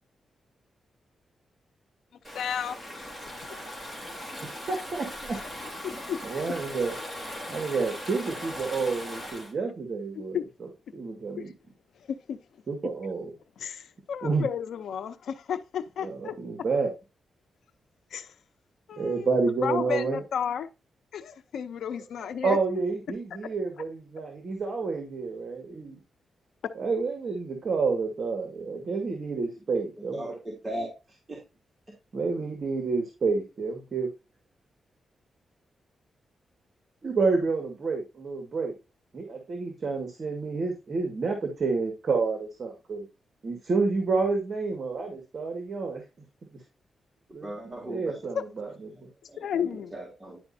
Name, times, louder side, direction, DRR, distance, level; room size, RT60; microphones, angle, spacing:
Stream / Ocean, 2.2-9.5, equal, 5° right, 3.5 m, -39 dB
voice 1, 2.3-3.1 5.8-6.2 10.3-10.4 11.4-11.5 12.1-12.4 13.6-16.4 18.1-18.3 18.9-19.3 19.6-20.7 21.1-22.6 48.3-48.4 49.4-49.9, left 8 dB, 85° left, 0.6 m, -32 dB
voice 2, 4.7-5.4 6.2-7.0 7.5-10.4 10.9-11.5 12.7-13.3 14.2-14.5 16.0-16.9 19.0-20.2 22.4-26.0 26.8-30.3 32.1-34.1 37.0-38.7 39.1-43.1 43.4-46.0 47.3-48.7 49.0-49.1, right 4 dB, 50° right, 1.7 m, -29 dB
voice 3, 30.1-30.9 31.3-31.4 47.4-48.2 49.3-50.4, right 1 dB, 20° right, 2.5 m, -37 dB
10.5 x 5.1 x 2.7 m
cardioid pair, 105°, 0 cm